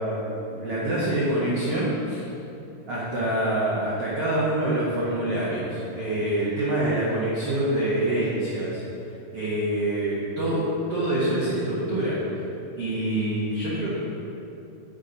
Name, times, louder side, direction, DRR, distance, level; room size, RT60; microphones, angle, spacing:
voice 1, 0.0-2.2 2.9-8.8 9.3-12.4 12.7-14.0, right 1 dB, 80° right, -8 dB, 1.3 m, -26 dB
8.2 x 5.6 x 5.2 m, 2.9 s
omnidirectional pair, 4.8 m